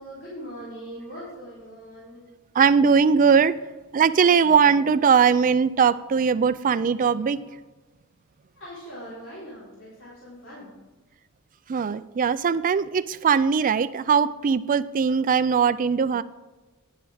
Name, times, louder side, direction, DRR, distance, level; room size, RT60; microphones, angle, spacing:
voice 1, 0.0-2.3 8.6-10.7, equal, 55° left, -9 dB, 3.8 m, -41 dB
voice 2, 2.5-3.6 3.9-7.4 11.7-16.2, right 6 dB, 35° right, 15 dB, 0.4 m, -20 dB
10.5 x 7.0 x 4.9 m, 1.2 s
head